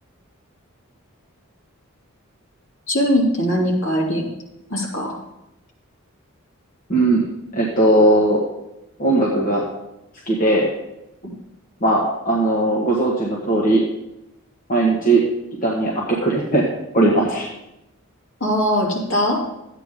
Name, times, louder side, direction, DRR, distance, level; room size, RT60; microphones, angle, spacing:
voice 1, 2.9-4.2 4.7-5.2 11.2-11.3 18.4-19.4, equal, 65° left, -3 dB, 3.1 m, -20 dB
voice 2, 6.9-7.3 7.5-8.4 9.0-9.7 10.2-10.7 11.8-13.9 14.7-15.2 15.6-17.5, right 2 dB, 40° left, -3 dB, 1.6 m, -18 dB
13.5 x 9.1 x 3.8 m, 0.88 s
head